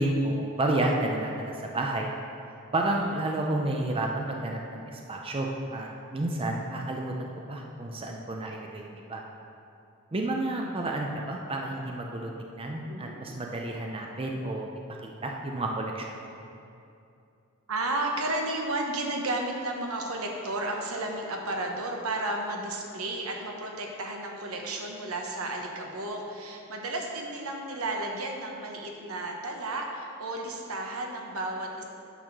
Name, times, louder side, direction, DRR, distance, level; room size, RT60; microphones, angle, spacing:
voice 1, 0.0-2.1 2.7-9.2 10.1-14.7 15.0-16.3, right 1 dB, 25° right, 1 dB, 0.5 m, -31 dB
voice 2, 17.7-31.8, right 2 dB, 75° right, 1 dB, 1.0 m, -33 dB
9.1 x 4.2 x 6.1 m, 2.6 s
head